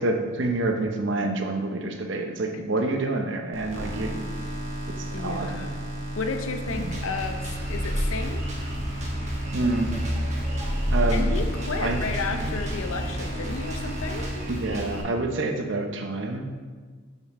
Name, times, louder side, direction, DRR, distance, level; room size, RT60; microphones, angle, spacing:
voice 1, 0.0-4.2 4.9-5.6 6.7-7.0 9.5-10.0 10.9-11.3 11.8-12.0 12.3-12.5 14.5-16.7, right 2 dB, 60° right, 4 dB, 0.7 m, -28 dB
sound 1, 3.5-15.2, right 1 dB, 75° right, 1.4 m, -34 dB
voice 2, 5.1-5.8 6.2-8.4 11.1-14.3, left 4 dB, 85° left, 6 dB, 0.7 m, -32 dB
Drum kit, 6.7-15.0, equal, 35° right, 1.2 m, -36 dB
sound 2, 7.6-13.2, equal, ahead, 0.6 m, -30 dB
7.2 x 5.5 x 4.1 m, 1.5 s
head